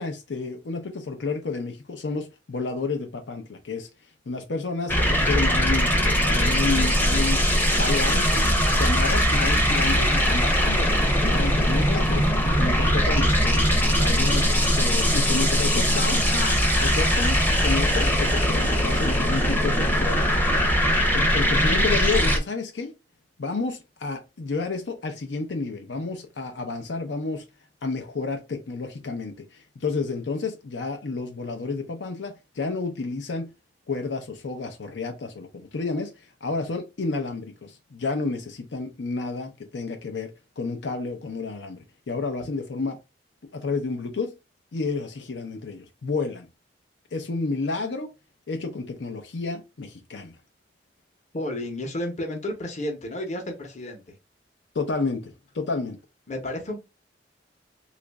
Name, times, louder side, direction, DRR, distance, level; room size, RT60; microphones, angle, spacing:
voice 1, 0.0-3.9 4.3-7.4 7.8-8.5 8.7-10.9 11.2-12.3 12.6-20.2 21.1-22.9 23.4-27.4 27.8-33.5 33.9-43.0 43.5-44.3 44.7-46.5 47.1-48.1 48.5-50.4 54.7-56.0, left 3 dB, 85° left, 0.6 m, -30 dB
sound 1, 4.9-22.4, equal, 10° left, 0.6 m, -21 dB
voice 2, 51.3-54.1 56.3-56.8, left 1 dB, 40° left, 0.8 m, -32 dB
3.0 x 2.4 x 3.3 m
head